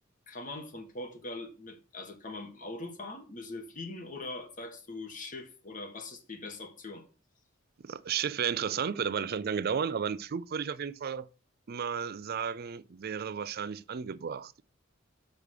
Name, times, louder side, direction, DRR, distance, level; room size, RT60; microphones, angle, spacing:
voice 1, 0.3-7.0, left 2 dB, 40° left, 1.5 m, -42 dB
voice 2, 7.8-11.3 11.7-14.6, right 7 dB, 50° right, 0.4 m, -33 dB
6.1 x 5.2 x 6.5 m
head